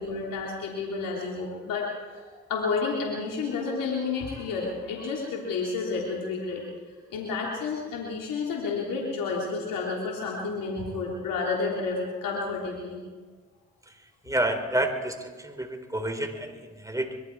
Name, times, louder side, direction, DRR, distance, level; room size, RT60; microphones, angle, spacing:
voice 1, 0.0-1.9 2.1-2.2 2.5-6.6 7.1-13.0, left 4 dB, 85° left, -3 dB, 3.4 m, -30 dB
voice 2, 13.9-17.2, right 1 dB, 10° right, 7 dB, 3.7 m, -30 dB
25.0 x 22.0 x 4.7 m, 1.4 s
supercardioid pair, 50°, 32 cm